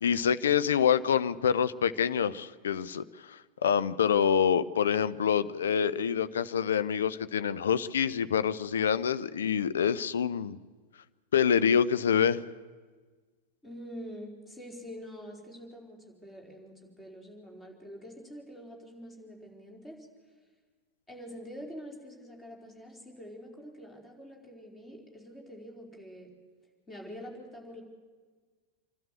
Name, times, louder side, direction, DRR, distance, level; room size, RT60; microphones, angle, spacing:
voice 1, 0.0-10.6 11.3-12.4, left 7 dB, 65° left, 14 dB, 0.6 m, -26 dB
voice 2, 13.6-20.1 21.1-26.3 26.9-27.8, equal, 15° left, 1 dB, 4.2 m, -46 dB
27.0 x 12.5 x 8.3 m, 1.5 s
figure-of-eight pair, 90°, 0 cm